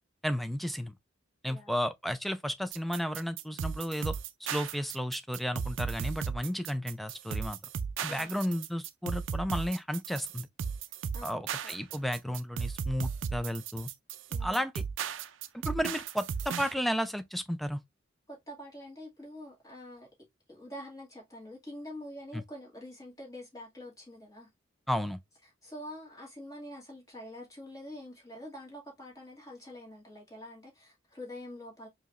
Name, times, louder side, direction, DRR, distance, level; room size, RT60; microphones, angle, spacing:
voice 1, 0.2-0.9 1.4-4.1 4.5-7.6 8.0-10.5 11.2-13.9 14.4-14.7 15.5-17.8 22.3-22.4 24.9-25.2, equal, ahead, 0.4 m, -33 dB
voice 2, 1.5-1.8 8.1-8.6 11.1-11.8 14.3-14.6 18.3-20.1 20.5-24.5 25.4-31.9, left 1 dB, 20° left, 2.1 m, -46 dB
sound 1, 2.7-16.7, right 6 dB, 70° right, 0.4 m, -36 dB
4.9 x 2.8 x 2.4 m
head